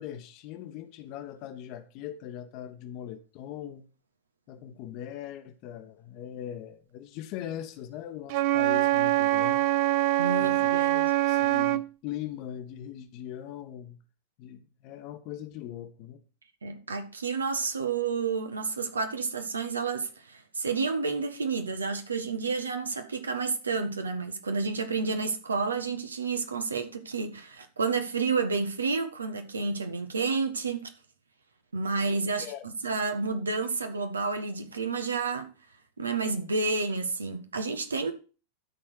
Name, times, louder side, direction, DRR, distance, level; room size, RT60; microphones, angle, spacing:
voice 1, 0.0-3.8 4.5-9.7 10.4-14.0 14.4-16.2 32.4-32.7, left 11 dB, 40° left, 1.3 m, -40 dB
Wind instrument woodwind instrument, 8.3-11.9, right 15 dB, 45° right, 0.5 m, -24 dB
voice 2, 10.2-11.1 16.6-30.9 31.7-35.5 36.0-38.1, right 4 dB, 75° right, 1.6 m, -30 dB
12.0 x 4.8 x 6.5 m
figure-of-eight pair, 90°, 0 cm